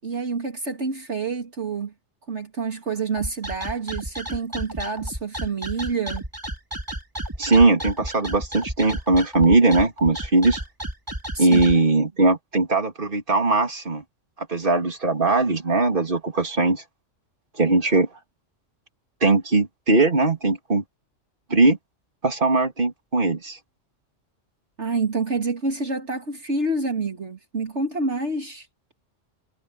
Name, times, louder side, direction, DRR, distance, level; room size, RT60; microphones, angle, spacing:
voice 1, 0.0-1.9 2.3-6.2 11.3-11.6 24.8-28.7, right 3 dB, 65° right, 2.8 m, -28 dB
sound 1, 3.2-11.8, right 1 dB, 15° right, 3.0 m, -32 dB
voice 2, 7.4-10.6 11.4-14.0 14.5-16.8 17.6-18.1 19.2-20.8 21.5-21.8 22.2-23.6, right 3 dB, 45° right, 3.2 m, -20 dB
omnidirectional pair, 1.3 m